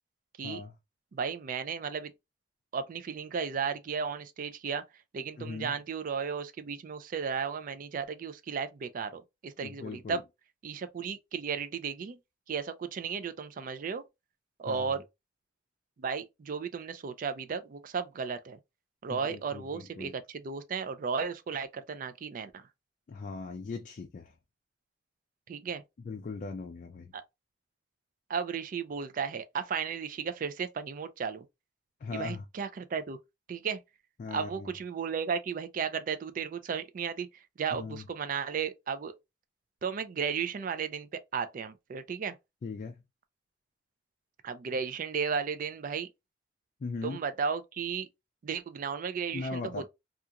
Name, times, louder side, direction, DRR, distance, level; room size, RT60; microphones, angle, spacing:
voice 1, 0.4-0.7 5.4-5.8 9.6-10.2 14.7-15.0 19.1-20.1 23.1-24.3 26.0-27.1 32.0-32.4 34.2-34.7 37.7-38.0 42.6-43.0 46.8-47.2 49.3-49.9, left 4 dB, 45° left, 0.3 m, -39 dB
voice 2, 1.1-2.1 2.7-4.8 5.1-10.2 10.6-12.2 12.5-14.0 14.6-15.0 16.0-18.6 19.0-22.7 25.5-25.8 27.1-27.2 28.3-31.4 32.1-33.2 33.5-33.8 34.3-39.1 39.8-42.4 44.4-46.1 47.0-48.1 48.4-49.9, right 6 dB, 50° right, 0.3 m, -34 dB
2.8 x 2.4 x 2.3 m
head